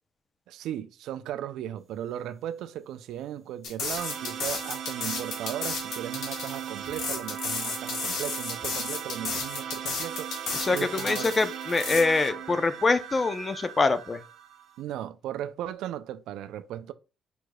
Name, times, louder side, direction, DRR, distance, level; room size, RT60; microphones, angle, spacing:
voice 1, 0.5-10.3 10.7-11.4 14.8-16.9, right 11 dB, 85° right, 0.3 m, -36 dB
sound 1, 3.6-12.0, left 4 dB, 80° left, 1.4 m, -33 dB
sound 2, 4.0-14.8, right 9 dB, 65° right, 0.7 m, -38 dB
voice 2, 10.5-14.2, left 3 dB, 30° left, 0.5 m, -25 dB
5.0 x 4.7 x 2.2 m
cardioid pair, 90°, 0 cm